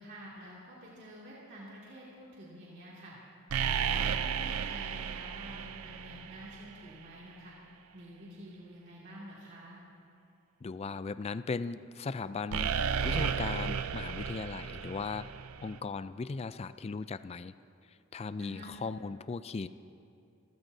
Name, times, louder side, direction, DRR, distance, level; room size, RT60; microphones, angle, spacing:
voice 1, 0.0-3.2 3.7-7.5 7.9-9.8 18.4-18.7, equal, 50° right, -7 dB, 2.4 m, -48 dB
sound 1, 3.5-6.7 12.5-15.8, right 6 dB, 80° right, 0.5 m, -33 dB
voice 2, 10.6-12.7 13.0-15.3 15.6-17.5 18.1-19.7, left 4 dB, 30° left, 14 dB, 0.3 m, -37 dB
28.0 x 15.0 x 2.7 m, 2.6 s
head